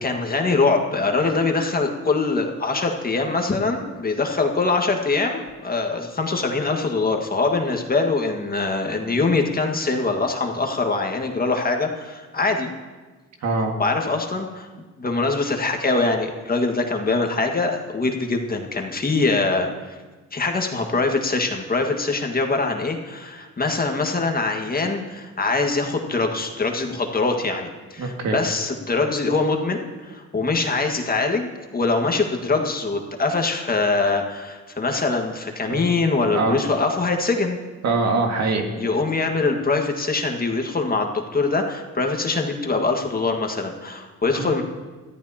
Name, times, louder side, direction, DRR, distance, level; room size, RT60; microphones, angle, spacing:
voice 1, 0.0-12.7 13.8-14.7 15.0-20.0 20.3-31.5 31.7-37.6 38.8-44.6, left 3 dB, 30° left, 3 dB, 1.8 m, -23 dB
voice 2, 13.4-13.8 28.0-28.4 35.7-35.8 36.3-36.5 37.8-38.7 44.4-44.5, right 3 dB, 60° right, 2 dB, 2.1 m, -23 dB
20.5 x 13.5 x 2.9 m, 1.3 s
cardioid pair, 90°, 30 cm